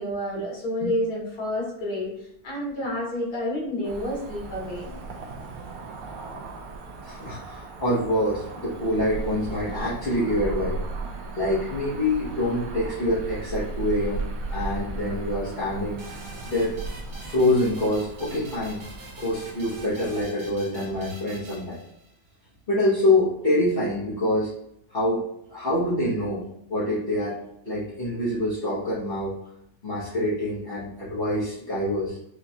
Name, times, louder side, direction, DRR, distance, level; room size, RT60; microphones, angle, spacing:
voice 1, 0.0-2.1 2.4-5.0, left 1 dB, 85° left, -4 dB, 1.9 m, -29 dB
Cricket / Motor vehicle (road), 3.8-20.2, right 3 dB, 75° right, 1.0 m, -36 dB
voice 2, 7.0-10.8 11.4-14.2 14.5-16.0 16.4-16.8 17.2-18.8 19.2-21.8 22.7-24.5 24.9-25.2 25.5-26.4 26.7-27.4 27.6-29.4 29.8-32.2, left 1 dB, 45° left, -9 dB, 1.1 m, -25 dB
sound 1, 16.0-22.3, right 2 dB, 55° right, 1.3 m, -45 dB
4.9 x 2.4 x 2.7 m, 0.77 s
omnidirectional pair, 1.6 m